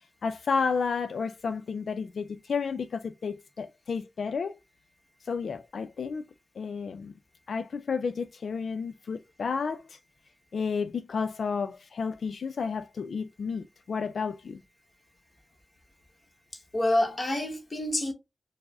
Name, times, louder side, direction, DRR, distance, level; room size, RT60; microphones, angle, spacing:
voice 1, 0.2-4.5 5.3-6.2 6.6-7.1 7.5-10.0 10.5-14.6, left 5 dB, 80° left, 0.3 m, -31 dB
voice 2, 16.5-18.1, left 1 dB, 30° left, 1.1 m, -28 dB
4.7 x 2.0 x 3.5 m
wide cardioid pair, 130°, 0 cm